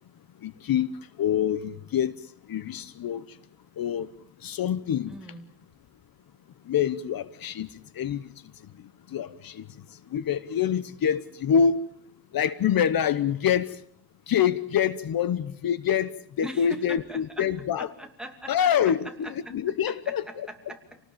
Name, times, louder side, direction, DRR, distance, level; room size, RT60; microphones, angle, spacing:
voice 1, 0.4-0.9 1.2-2.1 2.5-3.2 3.8-4.1 4.4-5.1 6.7-7.7 8.0-8.3 9.1-9.7 10.1-11.8 12.3-13.8 14.3-17.9 18.5-20.5, left 8 dB, 65° left, 16 dB, 1.0 m, -26 dB
voice 2, 5.1-5.6 16.4-17.5 17.8-19.6 19.9-21.0, right 1 dB, ahead, 4 dB, 2.7 m, -42 dB
28.5 x 19.0 x 7.3 m, 0.64 s
wide cardioid pair, 135°, 38 cm